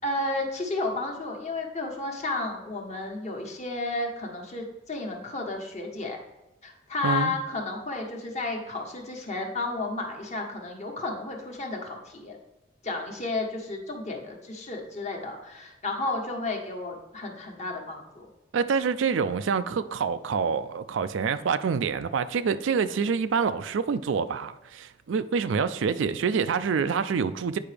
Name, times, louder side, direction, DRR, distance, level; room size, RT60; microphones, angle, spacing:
voice 1, 0.0-6.2 6.6-12.4 12.8-18.3, left 2 dB, 40° left, 1.2 m, -32 dB
voice 2, 7.0-7.3 18.5-27.6, right 6 dB, 75° right, 0.4 m, -26 dB
8.6 x 4.8 x 3.4 m
head